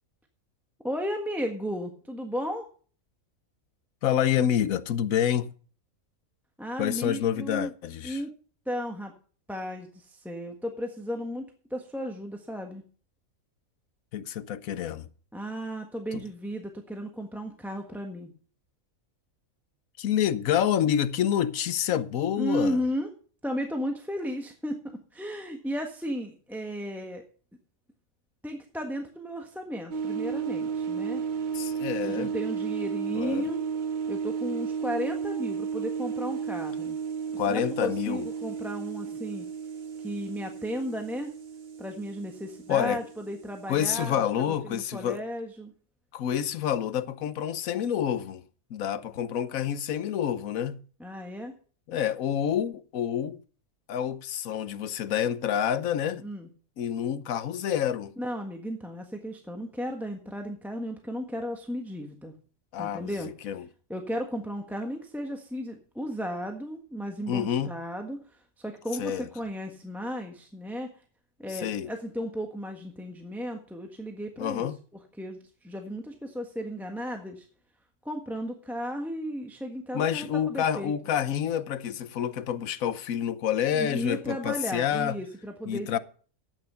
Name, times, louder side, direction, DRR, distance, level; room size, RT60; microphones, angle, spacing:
voice 1, 0.8-2.7 6.6-7.7 8.0-8.3 8.7-9.1 9.5-12.8 15.3-18.3 22.4-23.1 23.4-24.8 25.1-27.2 28.4-31.2 32.0-33.6 34.1-37.0 37.3-39.5 40.0-41.3 41.8-44.2 44.7-45.7 51.0-51.5 56.2-56.5 58.2-62.3 62.8-63.3 63.9-68.2 68.6-70.9 71.4-74.7 75.2-77.5 78.0-80.9 83.7-86.0, equal, ahead, 1.3 m, -34 dB
voice 2, 4.0-5.5 6.8-8.2 14.1-15.1 16.1-16.2 20.0-22.8 31.5-32.3 33.1-33.5 37.4-38.3 42.7-43.0 43.7-45.2 46.1-48.4 48.7-50.8 51.9-53.4 53.9-56.3 56.8-58.1 62.7-63.7 67.3-67.7 69.0-69.3 71.5-71.9 74.4-74.8 79.9-85.2 85.7-86.0, left 9 dB, 75° left, 1.2 m, -28 dB
sound 1, 29.9-44.1, right 6 dB, 40° right, 0.9 m, -33 dB
12.0 x 9.3 x 5.6 m
omnidirectional pair, 1.5 m